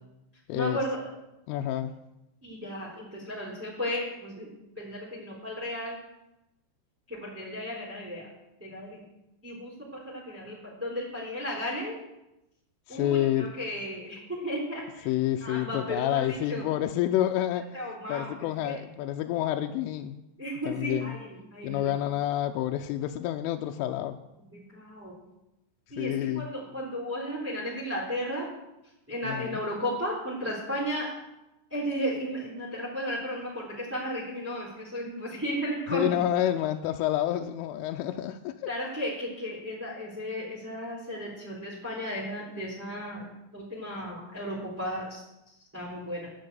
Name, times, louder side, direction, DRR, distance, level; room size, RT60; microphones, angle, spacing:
voice 1, 0.5-1.1 2.4-4.5 4.7-6.0 7.1-8.3 8.6-9.0 9.4-11.9 12.9-15.1 15.4-16.7 17.7-18.3 18.6-18.8 20.4-21.9 24.5-25.1 25.9-28.5 29.1-31.1 31.7-36.1 38.7-46.3, equal, 5° right, -6 dB, 2.5 m, -34 dB
voice 2, 1.5-1.9 12.9-13.5 15.1-17.7 18.1-20.2 20.7-21.1 21.6-24.2 26.0-26.4 29.3-29.6 35.9-38.7, left 12 dB, 85° left, 4 dB, 3.1 m, -28 dB
10.5 x 9.5 x 8.0 m, 0.92 s
omnidirectional pair, 5.7 m